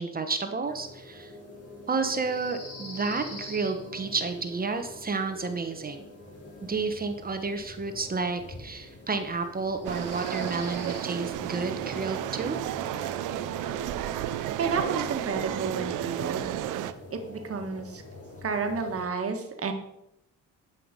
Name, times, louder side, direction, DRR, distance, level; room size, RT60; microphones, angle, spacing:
voice 1, 0.0-1.3 1.9-6.0 6.6-12.6, right 4 dB, 30° right, 7 dB, 1.1 m, -31 dB
sound 1, 0.6-19.0, left 1 dB, 50° left, 3.6 m, -44 dB
sound 2, 9.8-16.9, right 13 dB, 90° right, 0.6 m, -32 dB
voice 2, 14.6-16.5 17.1-18.0 18.4-19.7, right 5 dB, 50° right, 5 dB, 1.6 m, -31 dB
11.0 x 5.9 x 5.3 m, 0.83 s
cardioid pair, 90°, 30 cm